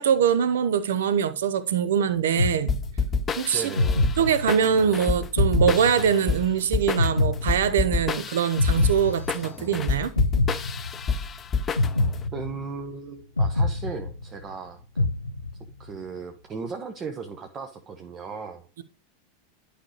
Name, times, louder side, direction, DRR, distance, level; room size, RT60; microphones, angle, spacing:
voice 1, 0.0-2.8 3.4-3.7 4.2-10.1, right 8 dB, 60° right, 0.7 m, -23 dB
sound 1, 2.4-3.2 3.8-4.8 5.4-6.5 7.0-8.1 8.6-9.7 10.2-11.2 11.8-12.9 13.4-14.5 15.0-15.8, left 2 dB, 80° left, 0.6 m, -26 dB
sound 2, 2.7-12.2, left 5 dB, 25° left, 0.6 m, -28 dB
voice 2, 3.5-4.1 12.3-15.1 15.8-18.6, right 5 dB, 25° right, 0.9 m, -36 dB
11.5 x 5.1 x 3.1 m
figure-of-eight pair, 85°, 0 cm